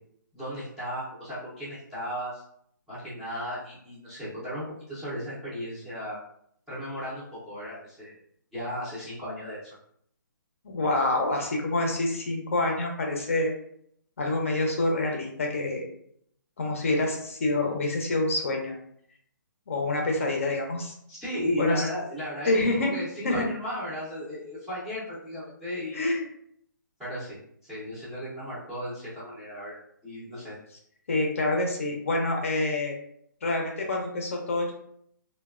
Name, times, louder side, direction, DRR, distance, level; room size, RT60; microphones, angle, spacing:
voice 1, 0.3-2.4 2.9-6.2 6.7-8.2 8.5-9.7 21.1-22.6 22.9-26.1 27.0-27.4 27.6-29.8 30.0-30.6, equal, ahead, -13 dB, 0.5 m, -35 dB
voice 2, 10.6-13.5 14.2-15.9 16.6-18.7 19.7-20.9 21.6-21.8 22.4-22.9 23.2-23.5 25.9-26.3 31.1-33.0 33.4-34.7, left 2 dB, 40° left, 1 dB, 0.5 m, -27 dB
3.1 x 2.2 x 2.3 m, 0.67 s
hypercardioid pair, 175°, 11 cm